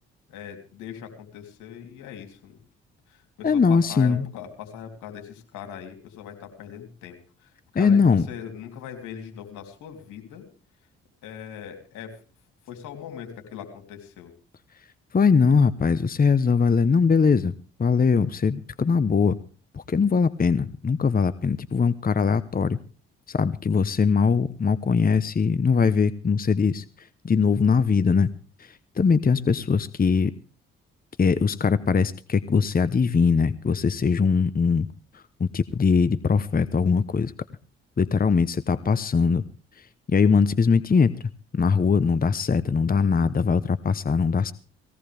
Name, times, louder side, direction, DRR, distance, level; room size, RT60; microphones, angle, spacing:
voice 1, 0.3-2.6 3.1-10.4 11.2-12.2 12.7-14.3, left 8 dB, 80° left, 4 dB, 3.3 m, -40 dB
voice 2, 3.4-4.3 7.7-8.2 15.1-17.5 17.8-19.4 19.7-22.8 23.3-28.3 28.6-30.3 31.2-34.9 35.1-37.3 38.0-39.4 39.8-41.1 41.5-44.5, left 5 dB, 30° left, 15 dB, 0.9 m, -21 dB
19.0 x 17.0 x 3.5 m, 0.38 s
hypercardioid pair, 45°, 30 cm